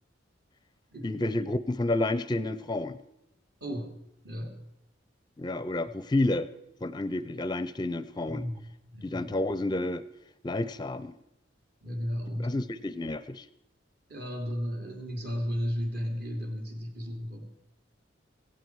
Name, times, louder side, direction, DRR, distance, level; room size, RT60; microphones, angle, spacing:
voice 1, 1.0-3.0 5.4-6.5 6.8-8.5 9.0-10.0 10.4-11.1 12.4-13.5, left 2 dB, 25° left, 15 dB, 0.5 m, -30 dB
voice 2, 4.2-4.6 8.2-8.6 8.9-9.4 11.8-12.5 14.1-17.4, equal, 55° right, 2 dB, 3.2 m, -34 dB
17.0 x 16.0 x 4.7 m, 0.86 s
head